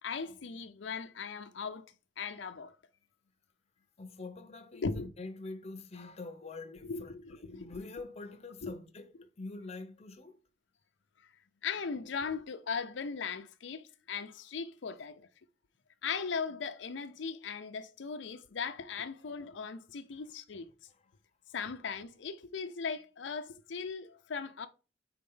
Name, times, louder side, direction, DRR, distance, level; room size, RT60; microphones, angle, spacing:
voice 1, 0.0-2.7 4.7-5.1 6.8-7.8 8.6-8.7 11.2-11.3 11.6-15.3 16.0-20.7 21.5-24.7, left 5 dB, 85° left, 0.6 m, -38 dB
voice 2, 4.0-7.1 7.4-10.4 20.1-20.2, left 3 dB, 35° left, 0.7 m, -45 dB
4.3 x 4.3 x 5.4 m
head